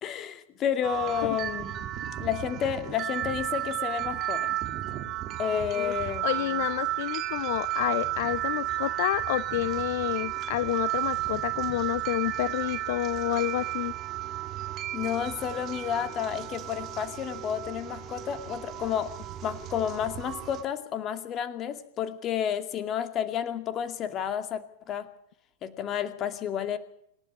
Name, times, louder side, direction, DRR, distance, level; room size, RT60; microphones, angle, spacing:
voice 1, 0.0-1.9 2.2-4.6 5.4-6.3 14.9-25.1 25.6-26.8, left 9 dB, 30° left, 10 dB, 2.4 m, -31 dB
sound 1, 0.8-20.6, right 14 dB, 35° right, 2.3 m, -33 dB
voice 2, 5.7-13.9, left 16 dB, 50° left, 15 dB, 0.8 m, -29 dB
26.5 x 12.0 x 8.4 m, 0.71 s
figure-of-eight pair, 90°, 0 cm